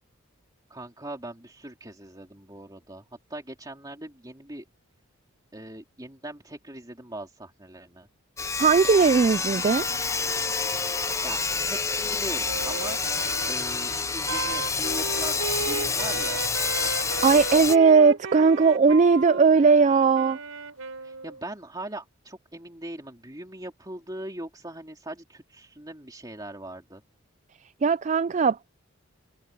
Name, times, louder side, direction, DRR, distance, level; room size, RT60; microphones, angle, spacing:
voice 1, 0.7-3.0 3.3-4.6 5.5-8.1 11.2-13.0 13.5-16.4 21.0-27.0, right 1 dB, 20° right, 3.0 m, -40 dB
Sawing, 8.4-17.8, left 4 dB, 15° left, 0.6 m, -28 dB
voice 2, 8.6-9.9 17.2-20.4 27.8-28.7, right 5 dB, 35° right, 0.3 m, -19 dB
sound 1, 8.9-20.4 21.8-21.9, left 4 dB, 80° left, 7.8 m, -48 dB
Wind instrument woodwind instrument, 12.5-21.4, right 4 dB, 85° right, 4.8 m, -35 dB
head